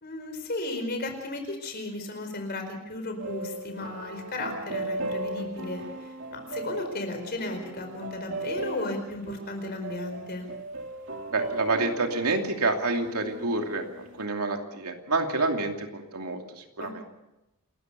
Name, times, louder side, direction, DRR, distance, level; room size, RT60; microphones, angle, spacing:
voice 1, 0.0-10.5 16.8-17.0, left 2 dB, 45° left, 5 dB, 4.7 m, -35 dB
sound 1, 3.2-14.3, right 2 dB, 60° right, 2.6 m, -37 dB
voice 2, 11.3-17.0, right 3 dB, 90° right, 3 dB, 2.8 m, -28 dB
28.0 x 14.0 x 6.8 m, 0.95 s
head